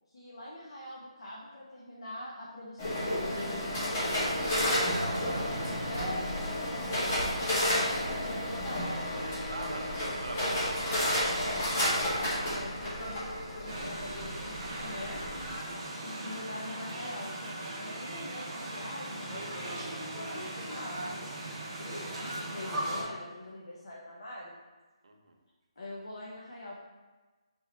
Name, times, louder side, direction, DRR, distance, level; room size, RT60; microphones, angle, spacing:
voice 1, 0.1-4.0 5.9-9.0 11.3-11.7 12.3-15.2 16.0-21.0 21.8-24.5 25.8-26.8, left 1 dB, 55° left, -5 dB, 0.9 m, -43 dB
sound 1, 2.8-15.5, equal, 25° left, 0.9 m, -31 dB
voice 2, 4.3-5.2 9.5-10.7 10.9-11.2 25.0-25.3, right 2 dB, 65° right, 2 dB, 0.8 m, -41 dB
sound 2, 13.7-23.0, right 1 dB, 15° right, 0.9 m, -38 dB
3.6 x 3.0 x 4.3 m, 1.2 s
hypercardioid pair, 175°, 3 cm